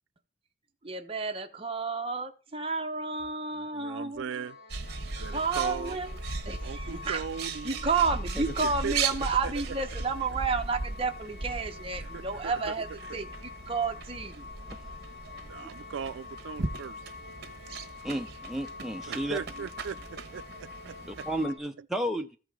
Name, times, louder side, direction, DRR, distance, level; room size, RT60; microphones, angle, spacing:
voice 1, 0.8-4.3 5.2-6.1 6.4-7.2 7.6-12.9 13.1-14.5, right 4 dB, 30° right, 0.9 m, -31 dB
sound 1, 3.2-3.3 4.1-4.3 5.1-5.2 5.9-6.0 6.8-6.9 7.6-7.7 8.5-8.6 9.3-9.4 10.1-10.3 10.6-10.9 11.1-11.4 11.7-12.0 12.3-13.2 13.4-14.8, left 1 dB, 45° left, 1.7 m, -57 dB
voice 2, 3.5-4.6 5.0-6.0 6.6-8.0 8.6-9.0 9.4-9.8 12.0-12.7 15.5-17.1 19.1-20.0 20.3-20.4 21.2-21.3 21.8-21.9, right 6 dB, 75° right, 0.4 m, -38 dB
sound 2, 4.3-21.6, left 5 dB, 65° left, 3.2 m, -47 dB
Bird, 4.7-21.5, right 4 dB, 55° right, 1.2 m, -38 dB
voice 3, 18.0-19.4 21.1-22.4, right 1 dB, ahead, 0.5 m, -33 dB
14.5 x 5.0 x 3.6 m
head